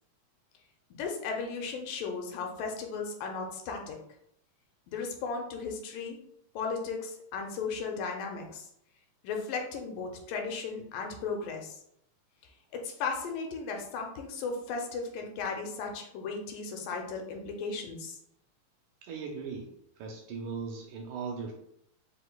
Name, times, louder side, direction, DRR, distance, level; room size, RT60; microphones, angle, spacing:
voice 1, 0.9-4.0 4.9-6.2 6.6-8.7 9.2-11.7 12.7-18.2, left 4 dB, 85° left, 2 dB, 2.3 m, -36 dB
voice 2, 19.0-19.7 20.0-21.5, right 5 dB, 80° right, 1 dB, 1.9 m, -38 dB
5.2 x 4.0 x 2.2 m, 0.74 s
omnidirectional pair, 3.9 m